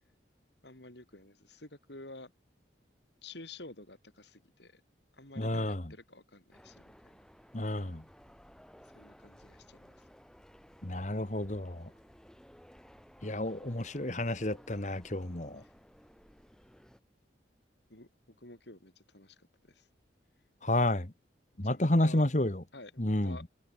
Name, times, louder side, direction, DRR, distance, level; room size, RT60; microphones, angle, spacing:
voice 1, 0.6-2.3 3.2-4.8 5.2-7.2 8.9-10.0 15.6-15.7 17.9-19.9 21.5-22.3 22.7-23.5, left 2 dB, 70° left, 6.4 m, -51 dB
voice 2, 5.4-5.8 7.5-8.0 10.8-11.9 13.2-15.6 20.6-21.1 21.6-22.6 23.0-23.4, left 1 dB, 40° left, 1.7 m, -30 dB
sound 1, 6.5-17.0, equal, 5° left, 5.3 m, -57 dB
head